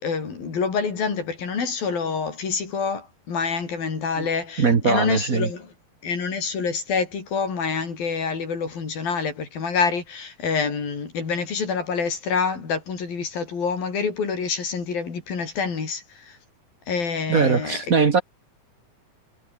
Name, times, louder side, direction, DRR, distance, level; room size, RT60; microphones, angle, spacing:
voice 1, 0.0-5.7 6.0-16.4 16.9-17.8, left 5 dB, 70° left, 6.7 m, -27 dB
voice 2, 4.6-5.5 17.3-18.2, right 5 dB, 75° right, 0.7 m, -20 dB
omnidirectional pair, 4.4 m